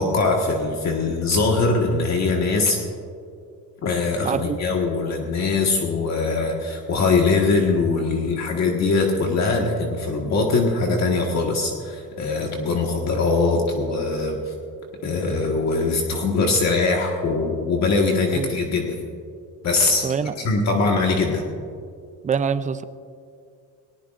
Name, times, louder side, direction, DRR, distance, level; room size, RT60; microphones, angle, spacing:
voice 1, 0.0-2.8 3.8-14.5 15.0-19.0 19.6-20.1 20.4-21.4, left 3 dB, 45° left, 0 dB, 1.6 m, -22 dB
voice 2, 4.2-4.6 18.3-18.5 20.0-20.5 22.2-22.8, right 6 dB, 20° right, 12 dB, 0.4 m, -25 dB
20.0 x 19.0 x 2.5 m, 2.3 s
cardioid pair, 140°, 39 cm